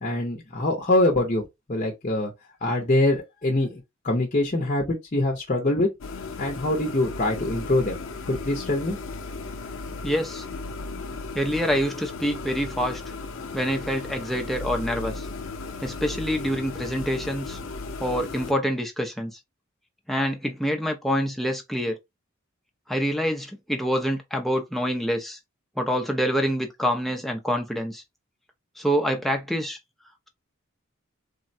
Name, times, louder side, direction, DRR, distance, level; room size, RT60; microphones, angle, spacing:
voice 1, 0.0-1.4 1.7-2.3 2.6-5.9 6.4-8.0 8.3-9.0, left 1 dB, 35° left, 0.6 m, -24 dB
sound 1, 6.0-18.5, left 3 dB, 75° left, 0.5 m, -35 dB
voice 2, 10.0-10.4 11.3-13.0 13.5-15.3 15.8-17.6 18.0-19.3 20.1-22.0 22.9-25.4 25.8-28.0 28.8-29.8, equal, ahead, 0.5 m, -26 dB
3.6 x 2.1 x 2.6 m
head